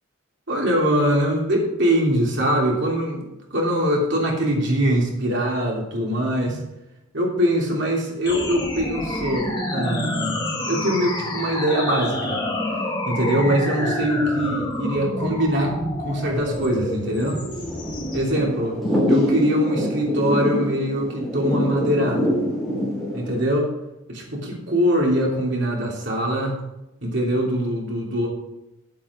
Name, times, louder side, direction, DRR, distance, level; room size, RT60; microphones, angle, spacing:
voice 1, 0.5-6.7 7.1-12.4 13.1-17.4 18.1-18.8 19.1-22.4 23.1-23.7 24.1-26.6 27.0-28.3, equal, 60° right, -2 dB, 3.1 m, -23 dB
sound 1, 8.2-18.2, left 1 dB, 20° left, 2.3 m, -28 dB
Thunder / Rain, 16.3-23.4, equal, ahead, 3.5 m, -25 dB
9.1 x 8.7 x 4.9 m, 0.94 s
head